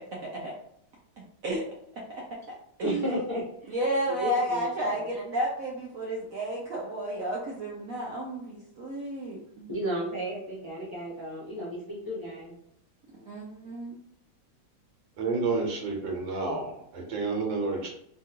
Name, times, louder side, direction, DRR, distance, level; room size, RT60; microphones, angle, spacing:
voice 1, 2.8-3.7 4.1-5.1 9.7-12.5, equal, 20° left, -7 dB, 0.5 m, -33 dB
voice 2, 3.7-9.7 13.1-14.0, right 1 dB, 65° right, -3 dB, 0.9 m, -32 dB
voice 3, 15.2-17.9, right 3 dB, 80° right, 0 dB, 1.7 m, -30 dB
3.6 x 2.4 x 2.8 m, 0.73 s
omnidirectional pair, 2.0 m